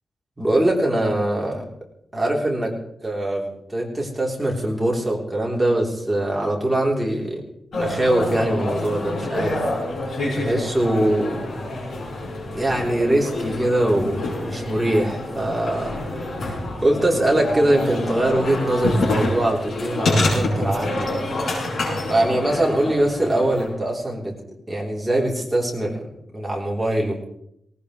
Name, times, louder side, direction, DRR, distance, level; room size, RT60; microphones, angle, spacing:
voice 1, 0.4-1.6 2.1-2.7 3.0-7.4 7.8-9.6 10.3-11.5 12.5-16.4 16.8-21.4 22.1-24.3 24.7-26.0 26.3-27.3, right 1 dB, 10° right, -3 dB, 3.7 m, -22 dB
sound 1, 7.7-23.7, left 2 dB, 70° left, 6.5 m, -27 dB
19.0 x 18.5 x 3.3 m, 0.76 s
wide cardioid pair, 150°, 0 cm